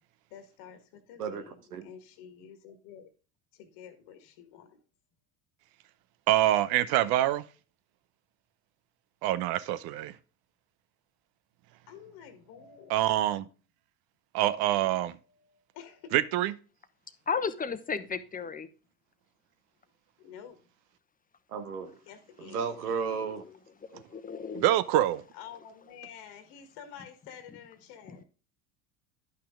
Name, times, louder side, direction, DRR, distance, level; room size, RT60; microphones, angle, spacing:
voice 1, 0.3-3.1 3.5-4.8 11.9-13.0 15.4-16.1 20.2-20.6 22.1-22.8 25.3-28.2, left 8 dB, 60° left, 1.6 m, -49 dB
voice 2, 1.2-1.8 21.5-22.0 22.4-23.4, right 6 dB, 85° right, 1.3 m, -34 dB
voice 3, 6.3-7.4 9.2-10.1 12.9-13.4 14.3-15.2 16.1-16.5 24.5-25.2, right 13 dB, 55° right, 0.9 m, -25 dB
voice 4, 17.3-18.7 23.9-24.6 28.1-28.2, left 5 dB, 20° left, 1.0 m, -33 dB
10.5 x 5.7 x 3.6 m
hypercardioid pair, 75°, 44 cm